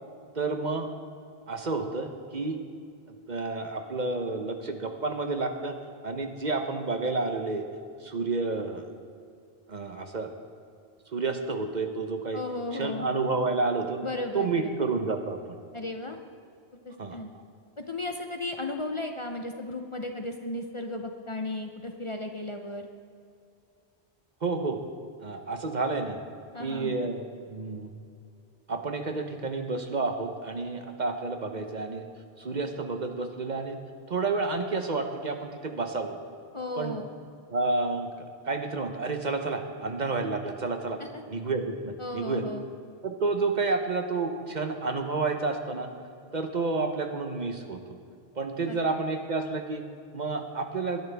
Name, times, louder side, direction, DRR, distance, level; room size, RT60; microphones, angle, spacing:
voice 1, 0.3-0.9 1.5-2.6 3.3-5.8 6.0-7.7 8.0-8.9 9.7-10.3 11.1-12.4 12.7-14.0 14.3-15.6 17.0-17.2 24.4-24.8 25.2-26.2 26.6-27.9 28.7-32.1 32.4-33.8 34.1-36.2 36.8-37.0 37.5-38.1 38.5-41.0 41.3-42.4 43.0-45.9 46.3-48.0 48.4-49.8 50.1-51.0, right 3 dB, 45° right, 5 dB, 1.0 m, -30 dB
voice 2, 12.3-13.1 14.0-14.7 15.7-16.2 16.9-17.3 17.8-22.9 26.5-27.0 36.5-37.1 41.0-41.2 42.0-42.6 48.7-48.8, left 2 dB, 35° left, 4 dB, 0.7 m, -35 dB
21.0 x 11.0 x 3.5 m, 2.4 s
omnidirectional pair, 1.1 m